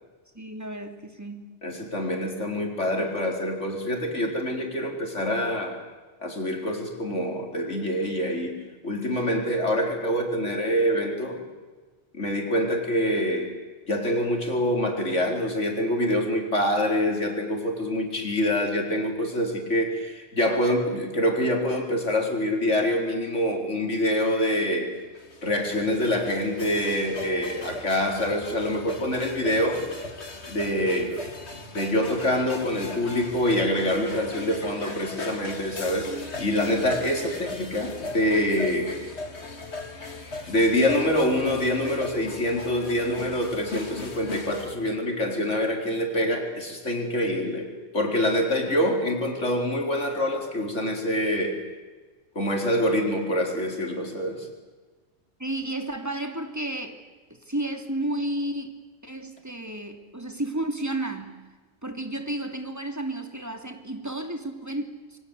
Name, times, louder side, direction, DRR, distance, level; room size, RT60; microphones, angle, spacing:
voice 1, 0.3-1.5 36.7-36.8 55.4-57.0 57.3-58.8 59.0-61.4 61.8-65.2, right 1 dB, 15° right, 6 dB, 2.8 m, -32 dB
voice 2, 1.6-5.8 6.2-8.6 8.8-11.4 12.1-13.5 13.9-24.9 25.4-29.9 30.5-31.2 31.7-39.1 40.5-51.6 52.3-54.5, left 1 dB, 90° left, 2 dB, 4.8 m, -25 dB
sound 1, 24.9-44.8, left 2 dB, 65° left, 2.7 m, -38 dB
27.0 x 24.5 x 8.3 m, 1.4 s
omnidirectional pair, 1.2 m